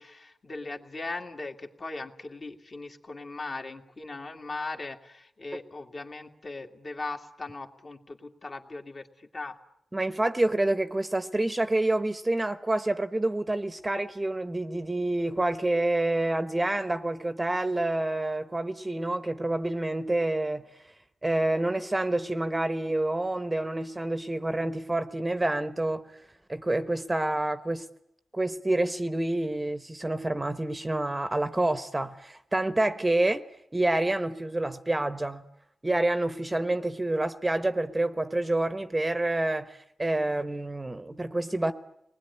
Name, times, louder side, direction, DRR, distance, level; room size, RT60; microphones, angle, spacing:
voice 1, 0.0-9.6, left 3 dB, 40° left, 2.3 m, -39 dB
voice 2, 9.9-20.6 21.2-26.0 26.5-27.8 28.3-33.4 33.7-35.4 35.8-41.7, right 2 dB, 20° right, 1.0 m, -28 dB
28.0 x 20.5 x 9.9 m
wide cardioid pair, 100°, 0 cm